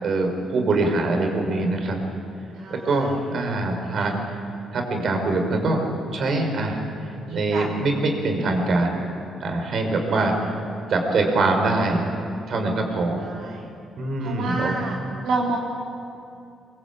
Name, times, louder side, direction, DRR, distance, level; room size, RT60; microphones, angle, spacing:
voice 1, 0.0-2.0 2.8-4.2 4.7-5.8 6.1-6.8 7.3-9.0 9.4-10.3 10.9-12.0 12.5-13.2 14.0-14.7, right 2 dB, 60° right, 3 dB, 5.6 m, -23 dB
voice 2, 2.5-3.1 3.4-3.6 3.9-4.2 7.3-7.7 10.1-10.5 13.2-13.7 14.2-15.0 15.2-15.6, right 3 dB, 80° right, -3 dB, 4.0 m, -30 dB
25.0 x 23.0 x 8.7 m, 2.6 s
cardioid pair, 90°, 0 cm